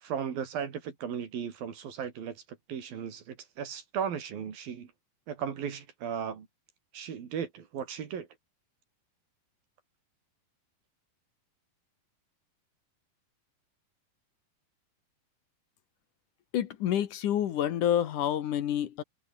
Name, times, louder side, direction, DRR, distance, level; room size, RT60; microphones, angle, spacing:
voice 1, 0.0-2.4 2.7-4.9 5.3-6.5 6.9-8.3, right 8 dB, 75° right, 4.6 m, -36 dB
voice 2, 16.5-19.0, left 10 dB, 65° left, 2.7 m, -28 dB
omnidirectional pair, 4.2 m